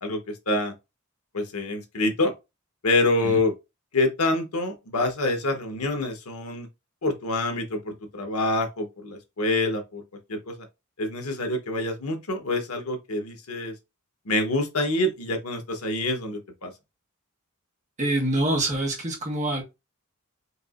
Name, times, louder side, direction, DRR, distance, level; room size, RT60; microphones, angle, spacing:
voice 1, 1.3-2.3 2.8-3.5 3.9-6.7 7.0-10.0 10.3-10.6 11.0-13.7 14.3-16.7, left 2 dB, 85° left, 1.0 m, -26 dB
voice 2, 18.0-19.6, right 1 dB, 35° right, 1.3 m, -25 dB
4.5 x 2.9 x 2.5 m
head